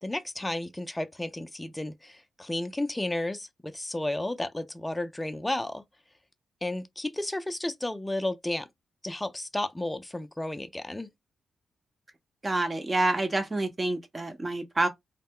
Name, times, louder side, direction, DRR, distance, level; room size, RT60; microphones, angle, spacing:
voice 1, 0.0-5.8 6.6-8.7 9.0-11.1, left 1 dB, 15° left, 0.5 m, -32 dB
voice 2, 12.4-14.9, right 2 dB, 30° right, 0.9 m, -27 dB
2.1 x 2.1 x 3.6 m
supercardioid pair, 50°, 0 cm